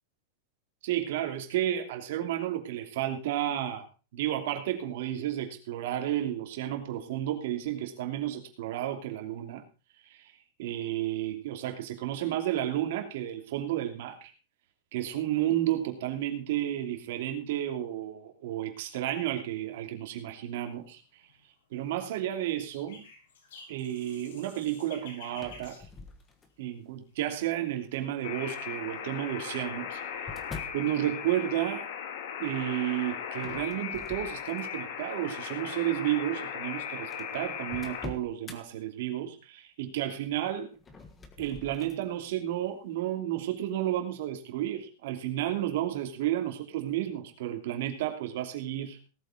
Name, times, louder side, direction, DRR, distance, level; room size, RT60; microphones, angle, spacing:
voice 1, 0.8-3.8 4.1-9.6 10.1-10.3 10.6-14.3 14.9-21.0 21.7-23.0 23.7-25.8 26.6-30.0 30.7-31.9 32.4-40.7 41.4-49.0, right 12 dB, 50° right, 5 dB, 2.9 m, -32 dB
sound 1, 21.0-21.5 22.2-26.8 27.1-27.9, left 4 dB, 80° left, 6.7 m, -51 dB
sound 2, 25.3-26.8 27.4-27.9 28.9-30.9 33.3-34.9 35.4-35.6 36.4-36.5 36.7-36.8 37.1-38.6 40.7-42.0, left 4 dB, 10° left, 1.5 m, -46 dB
Alarm, 28.2-38.1, left 8 dB, 50° left, 2.3 m, -38 dB
18.0 x 8.4 x 5.1 m, 0.34 s
supercardioid pair, 180°, 0 cm